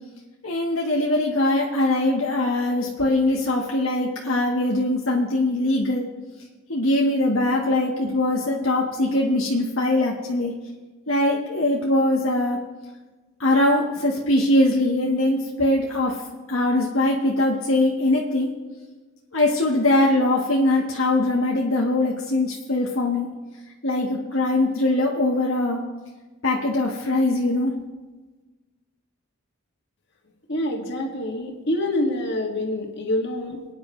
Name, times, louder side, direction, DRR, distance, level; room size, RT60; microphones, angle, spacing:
voice 1, 0.4-6.1 6.7-10.5 11.1-12.6 13.4-16.2 16.5-18.5 19.3-23.3 23.8-25.8 26.4-27.7, left 1 dB, 75° left, -2 dB, 1.5 m, -22 dB
voice 2, 30.5-33.7, left 1 dB, 55° left, 1 dB, 2.2 m, -26 dB
27.5 x 10.0 x 3.3 m, 1.3 s
head